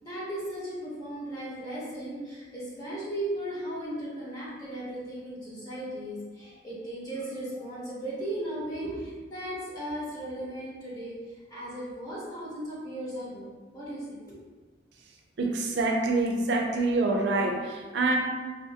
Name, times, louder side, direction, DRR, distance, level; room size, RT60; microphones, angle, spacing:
voice 1, 0.0-11.1 11.5-14.3, right 1 dB, 20° left, -9 dB, 0.8 m, -36 dB
voice 2, 15.4-18.2, right 2 dB, 65° right, 2 dB, 0.4 m, -26 dB
2.5 x 2.2 x 2.8 m, 1.4 s
head